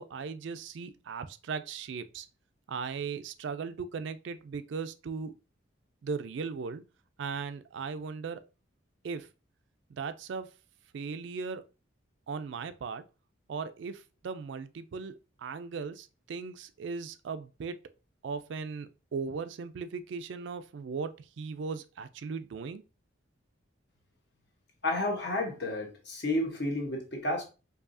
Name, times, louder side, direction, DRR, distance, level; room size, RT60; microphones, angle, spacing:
voice 1, 0.0-2.3 2.7-5.3 6.0-6.8 7.2-8.4 9.0-9.3 9.9-10.5 10.9-11.6 12.3-13.0 13.5-15.1 15.4-17.8 18.2-22.8, right 5 dB, 65° right, 0.3 m, -37 dB
voice 2, 24.8-27.4, left 1 dB, 55° left, 1.1 m, -31 dB
4.7 x 2.7 x 2.6 m
head